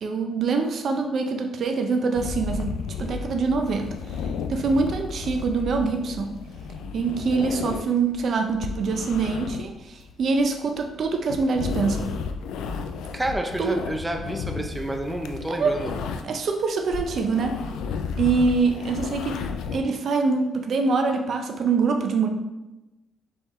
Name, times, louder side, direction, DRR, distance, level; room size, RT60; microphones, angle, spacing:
voice 1, 0.0-2.7 3.0-6.3 6.9-12.1 13.6-13.8 15.5-15.7 16.2-17.6 18.2-19.4 19.7-22.3, right 4 dB, 60° right, 5 dB, 0.5 m, -24 dB
sound 1, 2.1-16.5 16.8-19.8, left 5 dB, 85° left, 0.3 m, -33 dB
voice 2, 13.1-16.0, right 1 dB, 10° right, 4 dB, 0.5 m, -29 dB
4.3 x 3.6 x 3.1 m, 1.0 s
cardioid pair, 90°, 0 cm